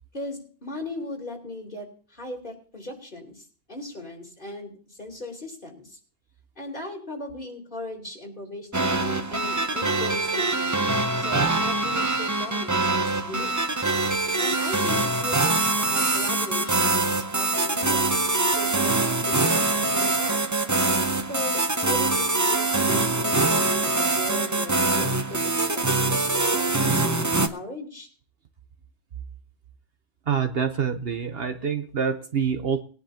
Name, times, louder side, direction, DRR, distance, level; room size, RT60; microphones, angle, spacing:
voice 1, 0.1-6.0 6.6-10.8 11.2-13.5 14.4-18.1 18.4-20.5 21.3-28.1, left 1 dB, 45° left, 1 dB, 4.2 m, -37 dB
sound 1, 8.7-27.5, right 2 dB, 20° right, 0.7 m, -24 dB
voice 2, 30.3-32.8, right 7 dB, 55° right, 8 dB, 1.1 m, -26 dB
20.5 x 10.5 x 2.8 m, 0.40 s
omnidirectional pair, 1.2 m